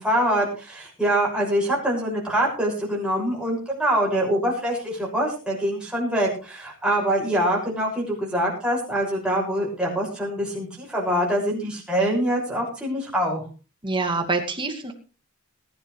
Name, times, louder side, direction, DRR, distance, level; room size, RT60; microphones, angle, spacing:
voice 1, 0.0-13.4, right 1 dB, 5° right, -4 dB, 6.5 m, -24 dB
voice 2, 13.8-14.9, right 3 dB, 20° right, 3 dB, 2.3 m, -25 dB
21.0 x 11.0 x 3.3 m, 0.35 s
head